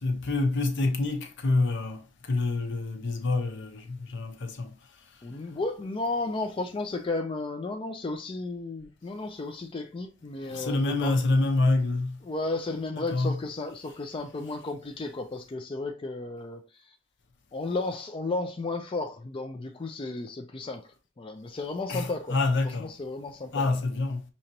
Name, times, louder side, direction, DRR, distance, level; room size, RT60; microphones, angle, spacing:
voice 1, 0.0-4.7 10.4-12.2 13.0-13.4 21.9-22.9 23.5-24.2, left 2 dB, 60° left, 0.9 m, -27 dB
voice 2, 5.2-11.2 12.2-16.9 17.5-20.9 21.2-22.4 22.6-23.8, left 3 dB, 25° left, 0.4 m, -33 dB
6.3 x 2.9 x 2.8 m
head